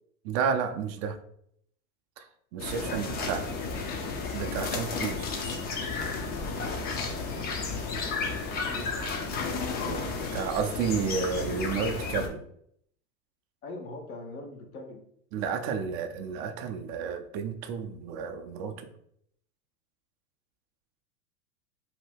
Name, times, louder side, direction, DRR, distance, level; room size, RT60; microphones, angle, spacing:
voice 1, 0.2-1.2 2.2-3.5 4.3-5.4 9.8-12.4 15.3-18.9, right 6 dB, 40° right, 6 dB, 0.4 m, -31 dB
voice 2, 2.5-3.6 7.9-9.0 13.6-15.0, left 2 dB, 85° left, 2 dB, 0.9 m, -43 dB
sound 1, 2.6-12.3, left 4 dB, 25° left, 0.4 m, -32 dB
2.7 x 2.2 x 3.3 m, 0.68 s
hypercardioid pair, 95°, 42 cm